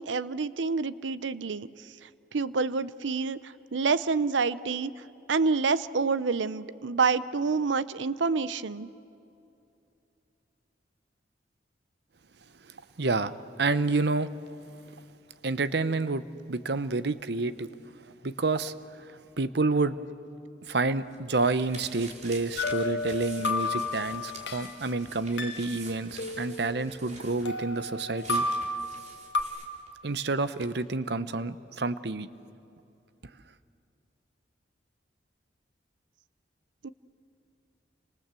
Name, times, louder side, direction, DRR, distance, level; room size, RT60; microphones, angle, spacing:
voice 1, 0.0-1.7 2.3-4.9 5.3-8.9 36.8-36.9, right 4 dB, 90° right, 16 dB, 0.7 m, -27 dB
voice 2, 13.0-14.3 15.4-17.7 18.2-18.7 19.4-20.0 20.7-28.5 30.0-32.3, right 3 dB, 60° right, 14 dB, 0.9 m, -29 dB
sound 1, 20.7-30.3 30.6-30.7, right 3 dB, 40° right, 3.4 m, -48 dB
sound 2, 22.6-24.8 25.4-27.1 27.5-29.4, left 2 dB, 70° left, 1.4 m, -32 dB
29.5 x 26.0 x 7.6 m, 2.6 s
head